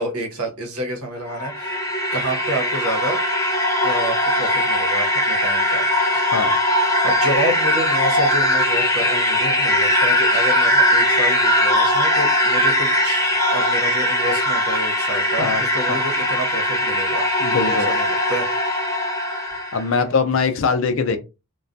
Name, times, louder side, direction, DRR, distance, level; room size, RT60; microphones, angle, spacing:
voice 1, 0.0-1.8 2.1-3.2 3.8-5.9 6.1-6.5 6.8-18.9, right 1 dB, 90° right, 0.9 m, -29 dB
sound 1, 1.2-19.9, left 1 dB, 15° left, 0.6 m, -20 dB
voice 2, 17.4-17.9 19.7-21.2, left 5 dB, 65° left, 0.4 m, -21 dB
2.3 x 2.2 x 2.5 m
head